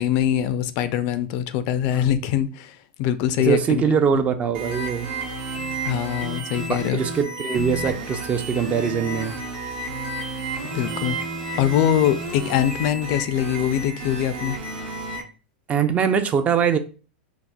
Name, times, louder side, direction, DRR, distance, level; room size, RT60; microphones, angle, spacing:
voice 1, 0.0-3.8 4.1-4.2 5.9-7.0 10.7-11.2 11.6-14.6, left 10 dB, 50° left, 0.3 m, -23 dB
voice 2, 3.4-5.1 6.9-9.4 15.7-16.8, right 7 dB, 25° right, 0.3 m, -22 dB
sound 1, 4.5-15.2, right 2 dB, 65° right, 0.8 m, -31 dB
4.0 x 2.4 x 2.2 m
hypercardioid pair, 130°, 5 cm